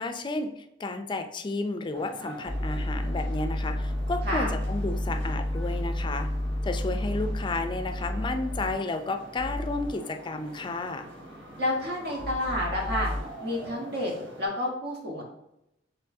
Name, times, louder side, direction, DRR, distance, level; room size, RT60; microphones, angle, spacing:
voice 1, 0.0-6.3 6.6-11.1, left 2 dB, 25° left, 7 dB, 0.4 m, -32 dB
sound 1, 1.9-14.5, right 1 dB, 80° right, 1.0 m, -44 dB
sound 2, 2.5-8.7 9.4-9.9 12.2-13.2, left 1 dB, 10° left, 0.9 m, -31 dB
voice 2, 11.6-13.1 13.4-14.1 14.4-15.2, left 1 dB, 60° right, -1 dB, 1.3 m, -29 dB
4.5 x 3.7 x 2.7 m, 0.84 s
head